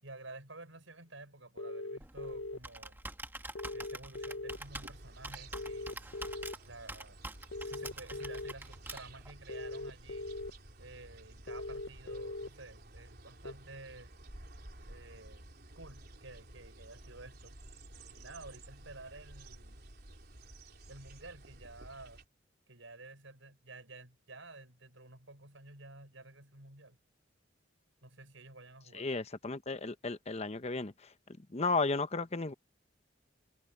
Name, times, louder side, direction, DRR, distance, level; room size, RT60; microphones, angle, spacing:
voice 1, 0.0-3.0 3.7-6.2 6.6-7.2 7.6-10.3 10.8-14.1 14.9-15.5 15.7-17.6 18.1-19.8 20.9-22.2 22.7-27.0 28.0-29.1, right 2 dB, 80° right, 6.8 m, -52 dB
sound 1, 1.6-2.6 3.6-4.6 5.5-6.5 7.5-8.5 9.5-10.5 11.5-12.5 13.4-13.5, left 2 dB, 75° left, 0.8 m, -40 dB
Computer keyboard, 2.0-9.3, right 2 dB, 10° right, 1.9 m, -46 dB
sound 2, 4.5-22.2, right 1 dB, 55° right, 3.7 m, -53 dB
voice 2, 28.9-30.9 31.5-32.5, left 3 dB, 35° left, 0.9 m, -34 dB
head